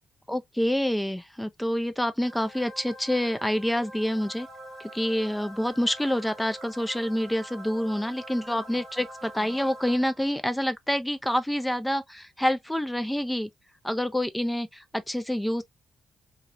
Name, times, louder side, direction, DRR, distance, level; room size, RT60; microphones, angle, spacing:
voice 1, 0.3-4.5 4.8-13.5 13.8-15.6, equal, 5° left, 0.4 m, -27 dB
sound 1, 2.2-10.5, right 1 dB, 35° right, 0.9 m, -45 dB
2.4 x 2.1 x 2.8 m
cardioid pair, 145°, 0 cm